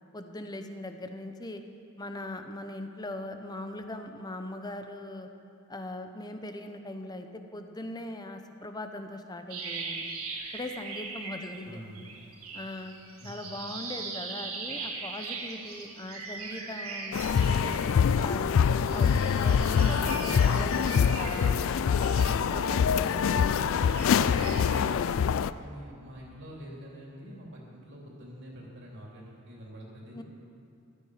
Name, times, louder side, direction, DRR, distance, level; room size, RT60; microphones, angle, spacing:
voice 1, 0.1-1.6 2.0-5.3 5.7-10.2 10.5-11.8 12.5-12.9 13.2-17.3 17.6-17.7 18.1-18.5 18.9-23.2 30.1-30.2, left 1 dB, 20° left, 6 dB, 0.7 m, -40 dB
sound 1, 9.5-11.7 12.0-18.2 18.7-23.1 23.5-24.8, right 4 dB, 80° right, 1.7 m, -40 dB
voice 2, 11.6-12.2 13.2-13.7 22.4-25.0 25.6-30.2, equal, 55° right, -3 dB, 3.2 m, -46 dB
sound 2, 17.1-25.5, left 7 dB, 65° left, 0.3 m, -25 dB
14.5 x 12.5 x 4.9 m, 2.6 s
head